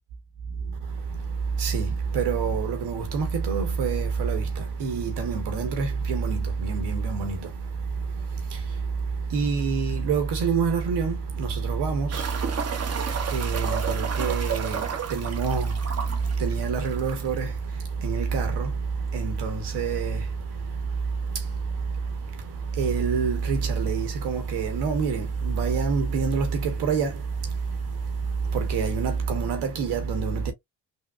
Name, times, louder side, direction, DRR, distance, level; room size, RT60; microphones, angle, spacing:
voice 1, 0.5-30.5, right 5 dB, 65° right, 1.2 m, -27 dB
sound 1, 12.1-17.5 17.8-17.9 18.2-18.3 21.1-21.2 22.9-23.0 23.8-23.9 24.1-24.2 25.1-25.2 25.3-26.0 26.9-27.0, right 7 dB, 35° right, 0.9 m, -33 dB
3.4 x 2.3 x 2.3 m
hypercardioid pair, 55°, 43 cm